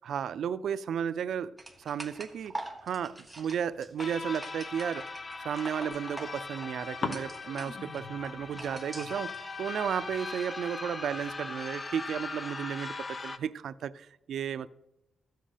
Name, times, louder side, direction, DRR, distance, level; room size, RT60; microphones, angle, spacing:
voice 1, 0.0-1.5 1.8-2.5 2.8-5.1 5.4-9.3 9.6-14.7, right 8 dB, 85° right, 15 dB, 0.4 m, -33 dB
sound 1, 1.6-9.4, right 1 dB, 5° right, 1.2 m, -45 dB
sound 2, 3.0-5.2 5.8-6.7 7.0-12.5, left 5 dB, 70° left, 1.0 m, -45 dB
sound 3, 4.0-13.4, left 3 dB, 30° left, 0.6 m, -40 dB
14.0 x 7.7 x 5.0 m, 0.90 s
wide cardioid pair, 130°, 0 cm